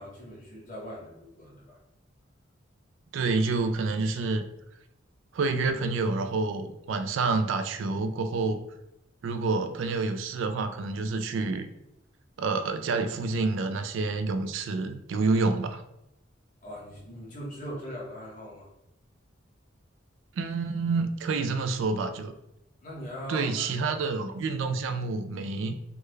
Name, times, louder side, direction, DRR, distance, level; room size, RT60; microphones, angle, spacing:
voice 1, 0.0-1.8 16.6-18.7 22.8-24.0, equal, 45° left, -4 dB, 1.1 m, -40 dB
voice 2, 3.1-4.4 5.3-8.6 9.2-11.7 12.4-15.8 20.4-22.3 23.3-25.8, right 3 dB, 85° right, 8 dB, 0.3 m, -28 dB
3.4 x 2.2 x 3.2 m, 0.84 s
head